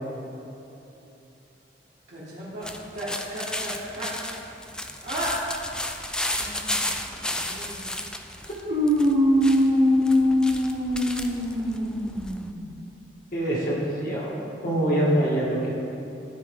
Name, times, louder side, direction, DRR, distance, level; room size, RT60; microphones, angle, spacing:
voice 1, 2.1-2.7 2.9-4.1 5.0-5.4 6.4-7.9 8.6-12.8, left 1 dB, 65° right, -12 dB, 1.7 m, -25 dB
sound 1, 2.6-12.5, left 1 dB, 5° left, 0.3 m, -33 dB
voice 2, 13.3-14.3 14.6-15.7, right 1 dB, 50° left, -6 dB, 1.8 m, -24 dB
12.5 x 4.4 x 3.6 m, 2.9 s
head